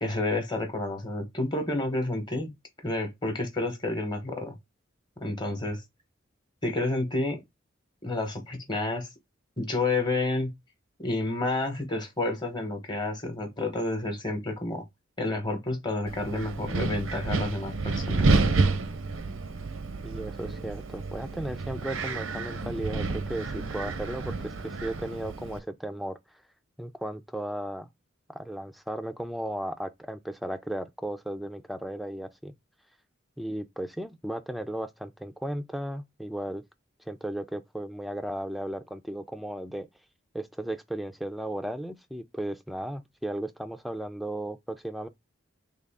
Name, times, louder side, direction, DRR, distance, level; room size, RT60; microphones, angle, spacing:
voice 1, 0.0-2.5 2.8-4.5 5.2-5.8 6.6-7.4 8.0-9.1 9.6-10.5 11.0-14.8 15.2-18.3, left 2 dB, 25° left, 0.9 m, -30 dB
Wind, 16.1-25.6, right 3 dB, 85° right, 0.6 m, -29 dB
voice 2, 20.0-26.2 26.8-27.9 28.3-32.5 33.4-36.6 37.1-39.9 40.3-45.1, right 1 dB, ahead, 0.3 m, -35 dB
3.6 x 2.3 x 3.4 m
head